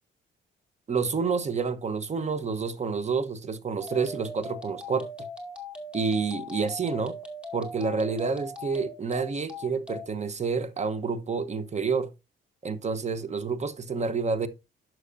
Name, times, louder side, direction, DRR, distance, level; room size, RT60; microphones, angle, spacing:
voice 1, 0.9-5.1 5.9-7.2 7.5-12.1 12.6-14.5, right 5 dB, 35° right, 0.9 m, -29 dB
sound 1, 3.8-10.1, left 2 dB, 5° right, 2.1 m, -40 dB
11.5 x 6.2 x 2.6 m
cardioid pair, 90°, 20 cm